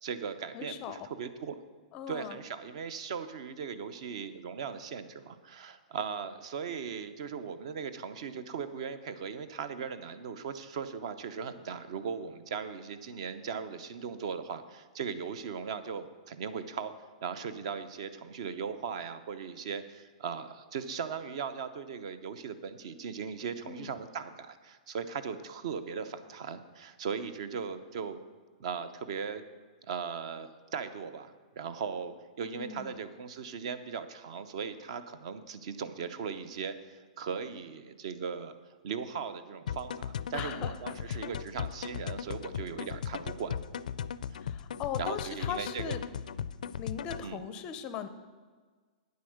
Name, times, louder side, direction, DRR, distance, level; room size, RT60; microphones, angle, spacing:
voice 1, 0.0-1.6 2.1-16.9 17.2-28.2 28.6-29.4 29.8-38.5 38.8-43.6 44.3-44.4 45.0-46.0 47.2-47.4, right 6 dB, 50° right, 13 dB, 0.7 m, -38 dB
voice 2, 0.5-1.0 1.9-2.4 23.7-23.9 32.5-33.0 40.3-41.3 44.4-46.0 46.8-48.1, left 8 dB, 20° left, 11 dB, 0.5 m, -39 dB
sound 1, 39.7-47.3, left 8 dB, 80° left, 0.4 m, -37 dB
9.4 x 8.1 x 6.4 m, 1.5 s
hypercardioid pair, 170°, 4 cm